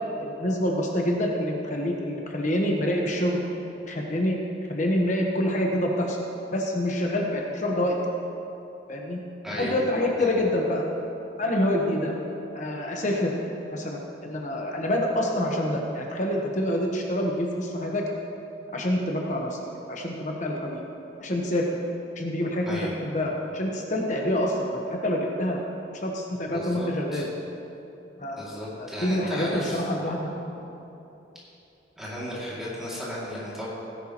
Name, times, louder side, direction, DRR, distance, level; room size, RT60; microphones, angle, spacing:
voice 1, 0.2-3.4 3.9-4.4 4.7-6.2 6.5-8.0 8.9-9.2 9.6-10.9 11.4-12.1 12.5-13.3 13.7-18.0 18.7-19.6 19.9-20.8 21.2-21.7 22.2-25.6 25.9-27.3 28.2-30.3, left 1 dB, 40° left, 0 dB, 1.1 m, -27 dB
voice 2, 9.4-9.8 10.2-10.4 22.7-23.0 26.5-27.3 28.4-29.9 32.0-33.7, equal, 5° right, -8 dB, 2.4 m, -35 dB
17.5 x 10.5 x 3.0 m, 2.9 s
head